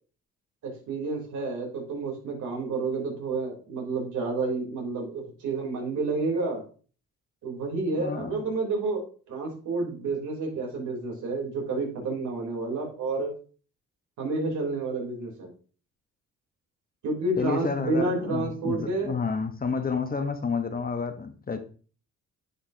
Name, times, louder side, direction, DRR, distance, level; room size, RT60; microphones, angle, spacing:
voice 1, 0.6-6.6 7.4-13.3 14.2-15.5 17.0-19.2, right 3 dB, 75° right, 3.6 m, -30 dB
voice 2, 8.0-8.4 17.4-21.6, left 5 dB, 30° left, 1.2 m, -30 dB
10.0 x 5.8 x 2.8 m
cardioid pair, 90°, 30 cm